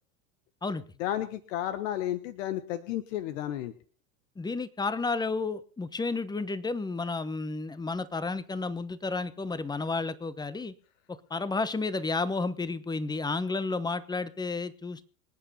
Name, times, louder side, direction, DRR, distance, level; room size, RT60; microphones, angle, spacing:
voice 1, 1.0-3.7, left 12 dB, 65° left, 12 dB, 1.4 m, -32 dB
voice 2, 4.4-10.7 11.1-15.1, left 3 dB, 10° left, 15 dB, 1.1 m, -32 dB
26.0 x 8.9 x 4.2 m, 0.42 s
hypercardioid pair, 110°, 40 cm